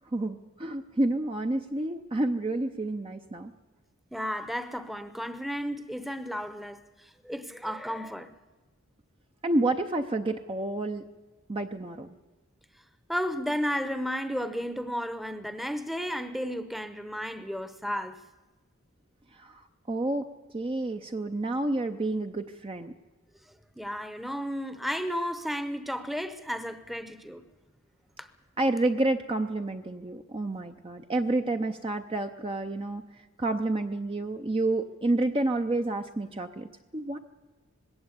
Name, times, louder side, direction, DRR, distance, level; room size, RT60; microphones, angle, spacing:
voice 1, 0.1-3.5 9.4-11.0 11.5-12.2 19.4-19.6 19.9-20.3 20.5-22.9 28.6-33.0 33.4-37.2, right 2 dB, 25° right, 0.6 m, -29 dB
voice 2, 4.1-8.3 13.1-18.2 23.8-27.4 28.2-28.3, equal, ahead, 0.8 m, -33 dB
20.5 x 17.0 x 8.3 m
head